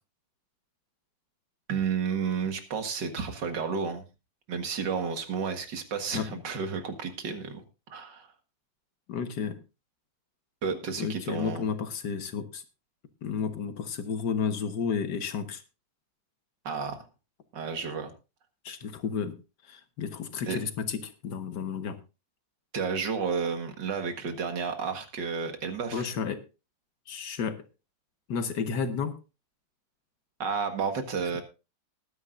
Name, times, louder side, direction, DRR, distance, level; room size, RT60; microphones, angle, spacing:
voice 1, 1.7-4.0 4.5-7.6 7.9-8.3 10.6-11.6 16.6-17.0 17.5-18.1 20.5-20.6 22.7-26.1 30.4-31.4, right 5 dB, 75° right, 7 dB, 2.3 m, -31 dB
voice 2, 9.1-9.6 11.0-12.6 13.2-15.6 18.6-22.0 25.9-26.4 27.1-27.7 28.3-29.2, left 6 dB, 65° left, 8 dB, 1.9 m, -32 dB
19.5 x 9.6 x 2.6 m, 0.30 s
omnidirectional pair, 2.0 m